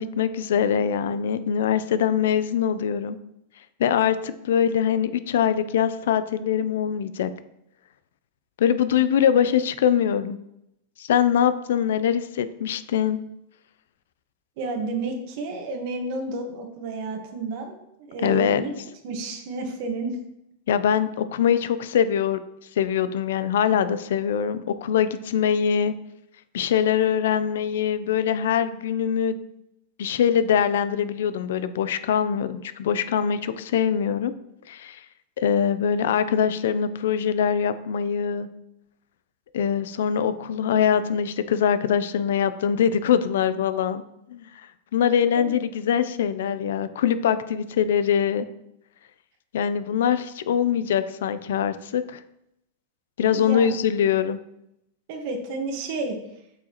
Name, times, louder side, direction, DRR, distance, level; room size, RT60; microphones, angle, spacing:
voice 1, 0.0-3.2 3.8-7.3 8.6-10.4 11.0-13.2 18.2-18.6 20.7-22.4 22.8-25.9 26.5-29.4 30.0-34.3 34.7-35.0 35.4-38.5 39.5-44.0 44.3-44.7 44.9-48.5 49.5-52.2 53.2-54.4, left 8 dB, 80° left, 12 dB, 0.5 m, -23 dB
voice 2, 14.6-18.7 19.0-20.2 45.3-45.6 53.3-53.7 55.1-56.2, right 3 dB, 55° right, 3 dB, 1.5 m, -31 dB
8.0 x 6.3 x 3.0 m, 0.80 s
supercardioid pair, 145°, 0 cm